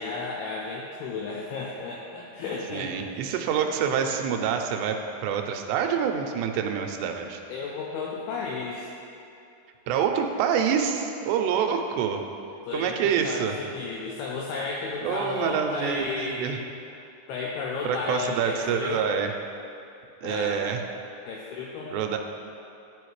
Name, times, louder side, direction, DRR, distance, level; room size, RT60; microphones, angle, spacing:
voice 1, 0.0-3.4 7.5-8.9 12.7-16.5 17.3-19.1 20.2-20.6 21.3-22.2, left 4 dB, 80° left, -3 dB, 2.4 m, -33 dB
voice 2, 2.7-5.0 5.2-7.4 9.9-12.2 12.7-13.5 15.0-16.6 17.9-19.3 20.2-20.8 21.9-22.2, right 7 dB, 90° right, 4 dB, 2.7 m, -26 dB
12.0 x 5.0 x 3.2 m, 2.7 s
omnidirectional pair, 4.8 m